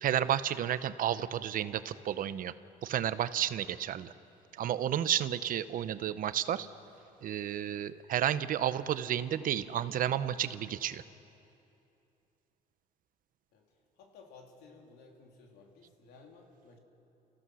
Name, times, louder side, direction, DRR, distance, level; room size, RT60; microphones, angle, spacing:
voice 1, 0.0-2.5 2.8-4.1 4.5-6.7 7.2-11.0, right 10 dB, 55° right, 14 dB, 0.7 m, -31 dB
voice 2, 13.5-16.8, left 4 dB, 80° left, 1 dB, 3.2 m, -56 dB
29.0 x 15.5 x 6.3 m, 2.8 s
cardioid pair, 110°, 17 cm